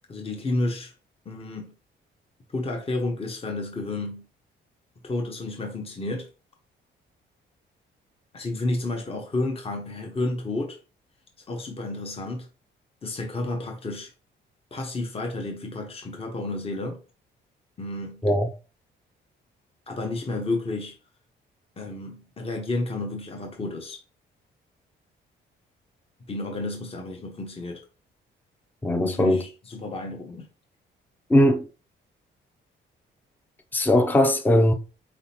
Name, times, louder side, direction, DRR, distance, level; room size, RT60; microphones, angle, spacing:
voice 1, 0.1-0.9 1.2-1.7 2.5-4.3 5.0-6.3 8.3-10.8 11.5-12.5 13.0-14.1 14.7-17.0 17.8-18.2 19.9-21.0 21.8-24.0 26.3-27.8 29.0-30.5, left 2 dB, 30° left, 1.1 m, -31 dB
voice 2, 28.8-29.4 31.3-31.7 33.7-34.7, left 1 dB, 10° left, 0.5 m, -19 dB
4.3 x 3.6 x 2.9 m
cardioid pair, 90°, 20 cm